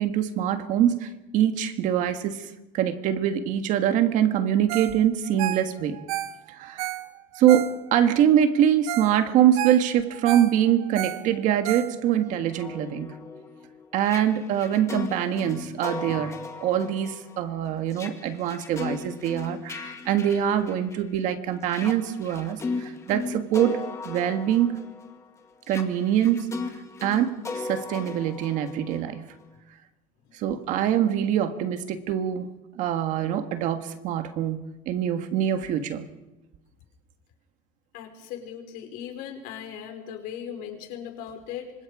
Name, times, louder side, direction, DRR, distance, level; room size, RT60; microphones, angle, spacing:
voice 1, 0.0-6.0 6.5-6.9 7.3-13.2 13.9-23.8 24.0-24.8 25.7-26.5 27.0-29.2 30.3-32.5 32.8-36.0, right 10 dB, 45° right, 8 dB, 1.7 m, -24 dB
Ringtone, 4.7-5.0 5.2-8.1 8.6-8.7 8.9-9.1 9.4-12.3 12.7-12.8, right 15 dB, 85° right, 1.3 m, -32 dB
sound 1, 12.3-21.2 21.6-29.4, left 4 dB, 15° left, 2.0 m, -37 dB
voice 2, 37.9-41.7, left 9 dB, 60° left, 3 dB, 5.1 m, -38 dB
27.5 x 25.5 x 5.0 m, 1.0 s
cardioid pair, 170°, 18 cm